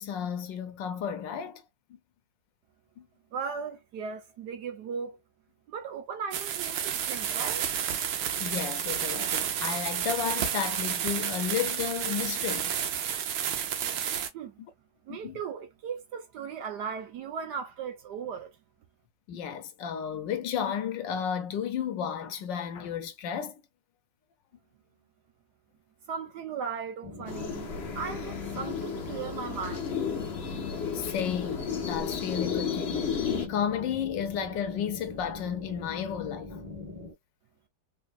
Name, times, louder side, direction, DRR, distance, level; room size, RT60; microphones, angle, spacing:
voice 1, 0.0-1.6 3.0-3.1 8.4-12.8 15.1-15.4 19.3-23.6 30.7-36.6, left 8 dB, 70° left, 1.3 m, -33 dB
voice 2, 3.3-5.2 5.7-7.7 14.3-14.6 15.0-18.5 26.1-27.7 27.9-30.0, right 6 dB, 65° right, 1.1 m, -37 dB
sound 1, 6.3-14.3, right 9 dB, 85° right, 1.6 m, -31 dB
sound 2, 27.0-37.1, left 3 dB, 10° right, 1.2 m, -42 dB
sound 3, 27.3-33.5, left 6 dB, 55° left, 0.7 m, -33 dB
3.5 x 3.4 x 2.4 m
omnidirectional pair, 2.2 m